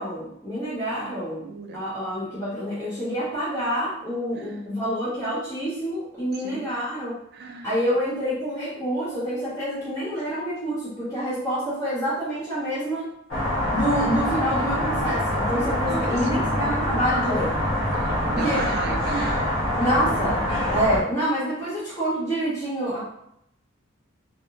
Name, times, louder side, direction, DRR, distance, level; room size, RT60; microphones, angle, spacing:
voice 1, 0.0-1.5 1.7-7.2 7.6-13.1 13.7-17.5 18.3-18.6 19.8-20.4 20.7-23.0, equal, 15° left, -13 dB, 0.8 m, -27 dB
voice 2, 0.9-1.8 4.3-4.7 6.4-6.7 7.3-7.7 13.9-14.3 15.8-16.4 18.0-19.4, right 3 dB, 50° right, 4 dB, 0.4 m, -36 dB
sound 1, 13.3-21.0, equal, 65° left, 0.9 m, -25 dB
2.8 x 2.1 x 2.5 m, 0.76 s
head